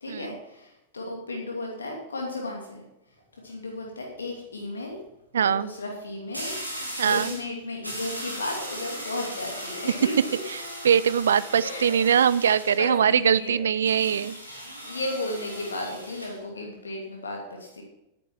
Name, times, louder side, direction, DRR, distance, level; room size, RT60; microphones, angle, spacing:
voice 1, 0.0-2.8 3.4-5.0 5.4-6.5 7.0-10.4 11.6-11.9 12.8-14.0 14.8-17.8, left 2 dB, 75° left, 0 dB, 2.7 m, -34 dB
sound 1, 3.2-3.5 6.3-7.5 7.8-12.8 13.8-16.4, equal, 85° right, 2.8 m, -37 dB
voice 2, 5.3-5.7 7.0-7.3 10.8-14.4, right 8 dB, 65° right, 19 dB, 0.4 m, -22 dB
10.5 x 9.3 x 6.0 m, 0.90 s
figure-of-eight pair, 90°, 0 cm